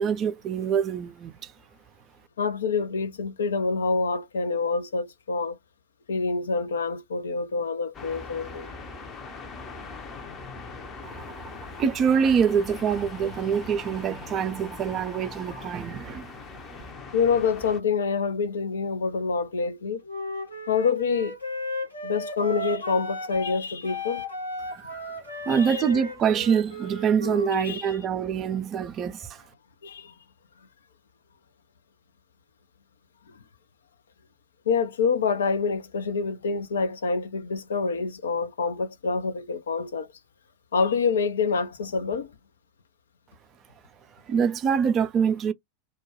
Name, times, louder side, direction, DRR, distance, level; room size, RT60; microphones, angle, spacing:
voice 1, 0.0-1.5 11.0-11.5 11.8-16.3 24.7-25.1 25.5-29.4 44.3-45.5, right 7 dB, 30° right, 0.4 m, -25 dB
voice 2, 2.4-5.6 6.1-8.7 17.1-20.0 20.7-21.4 22.0-24.3 25.5-25.8 27.5-28.0 29.8-30.1 34.7-40.1 40.7-42.3, left 5 dB, 65° left, 0.5 m, -26 dB
sound 1, 7.9-17.8, left 4 dB, 25° left, 0.6 m, -41 dB
Wind instrument woodwind instrument, 20.1-23.6 23.8-27.7, left 1 dB, 85° left, 1.0 m, -34 dB
2.2 x 2.1 x 2.9 m
figure-of-eight pair, 90°, 0 cm